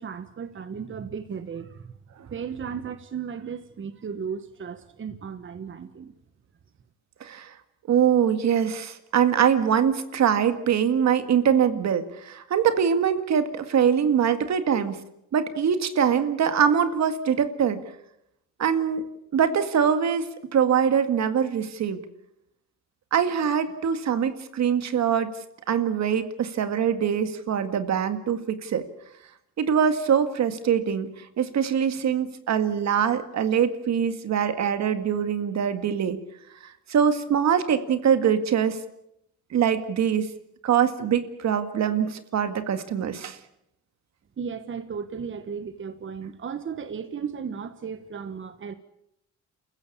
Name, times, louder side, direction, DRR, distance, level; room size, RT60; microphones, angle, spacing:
voice 1, 0.0-1.9 2.3-6.1 44.4-48.7, right 6 dB, 40° right, 11 dB, 1.3 m, -35 dB
voice 2, 7.2-7.5 7.9-15.0 15.3-17.8 18.6-19.1 19.3-20.2 20.5-22.0 23.1-25.3 25.7-28.8 29.6-36.2 36.6-38.8 39.5-40.3 40.6-43.4, right 8 dB, 65° right, 10 dB, 2.0 m, -23 dB
28.5 x 15.0 x 8.4 m, 0.80 s
cardioid pair, 90°, 30 cm